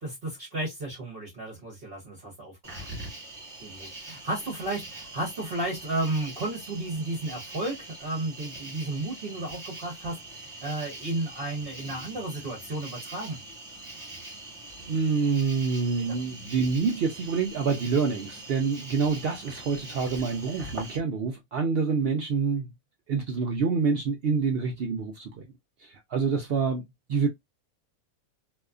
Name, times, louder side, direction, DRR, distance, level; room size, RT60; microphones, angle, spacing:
voice 1, 0.0-2.9 3.6-13.4, right 2 dB, 45° right, 1.0 m, -33 dB
Cricket, 2.6-21.0, right 2 dB, 20° right, 1.2 m, -43 dB
voice 2, 14.8-22.7 23.1-25.4 25.8-26.8 27.1-27.3, right 5 dB, 75° right, 0.5 m, -27 dB
2.7 x 2.3 x 2.3 m
omnidirectional pair, 1.5 m